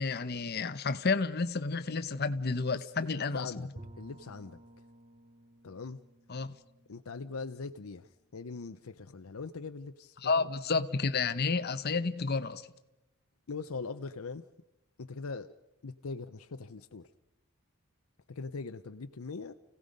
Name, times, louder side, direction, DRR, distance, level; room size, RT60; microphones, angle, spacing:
voice 1, 0.0-3.7 6.3-6.5 10.2-12.7, left 4 dB, 45° left, 0.8 m, -31 dB
voice 2, 2.7-3.7 4.0-4.6 5.6-6.0 6.9-10.5 13.5-14.5 15.0-15.5 15.8-17.1 18.3-19.5, left 4 dB, 75° left, 0.7 m, -41 dB
Bowed string instrument, 3.8-8.6, right 1 dB, 25° right, 0.7 m, -55 dB
30.0 x 17.0 x 5.3 m
head